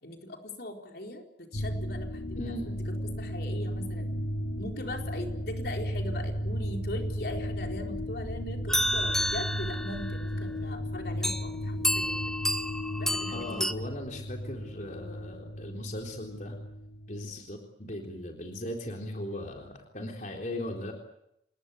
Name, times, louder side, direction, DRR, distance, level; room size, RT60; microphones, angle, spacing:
voice 1, 0.0-4.1 4.6-12.4 13.0-13.7, left 1 dB, 60° left, 3 dB, 4.4 m, -40 dB
sound 1, 1.5-17.4, equal, 85° left, 5.8 m, -35 dB
voice 2, 2.4-2.7 13.3-16.6 17.1-20.9, left 1 dB, 45° left, 2 dB, 3.9 m, -38 dB
sound 2, 8.7-10.3 11.2-11.5 11.8-13.7, equal, 5° left, 0.9 m, -30 dB
28.0 x 21.0 x 8.3 m, 0.78 s
head